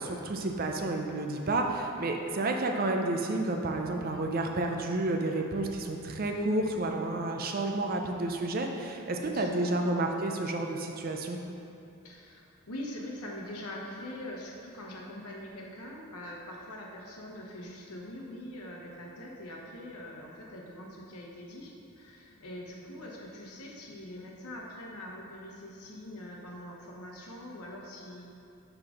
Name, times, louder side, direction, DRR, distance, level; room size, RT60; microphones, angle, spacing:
voice 1, 0.0-11.4, right 2 dB, 40° right, 3 dB, 0.5 m, -30 dB
voice 2, 9.2-9.6 12.0-28.4, left 1 dB, 85° left, -2 dB, 1.1 m, -43 dB
5.7 x 4.9 x 5.1 m, 2.7 s
head